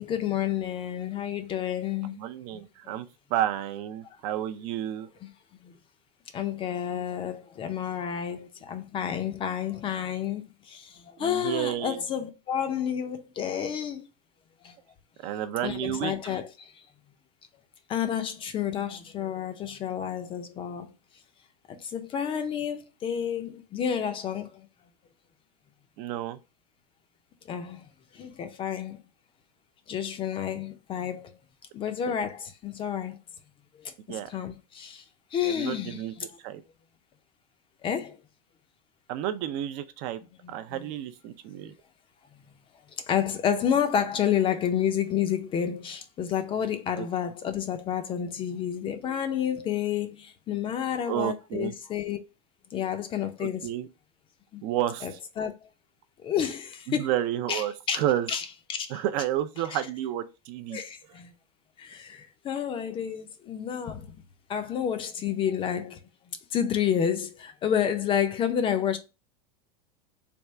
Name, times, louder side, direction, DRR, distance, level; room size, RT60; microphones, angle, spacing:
voice 1, 0.0-2.1 6.3-10.4 11.2-14.0 15.6-16.5 17.9-20.9 21.9-24.5 27.5-27.8 28.2-28.9 29.9-31.2 31.8-33.1 34.3-34.5 35.3-36.0 37.8-38.1 40.7-40.8 43.1-50.1 50.5-52.2 52.7-53.6 55.0-55.5 56.2-57.1 57.5-58.0 58.3-58.9 59.7-59.8 60.7-60.9 62.5-64.0 64.5-65.9 66.5-67.3 67.6-69.0, left 9 dB, 25° left, 0.5 m, -29 dB
voice 2, 2.0-3.1 3.3-5.1 11.2-12.0 15.2-16.4 26.0-26.4 32.1-32.2 34.1-34.3 35.4-36.1 36.4-36.6 39.1-40.2 40.5-41.7 47.0-47.1 51.1-51.7 53.4-53.9 54.6-55.2 56.9-58.3 58.9-60.8, right 12 dB, 45° right, 0.4 m, -31 dB
3.4 x 2.4 x 4.1 m
supercardioid pair, 135°, 21 cm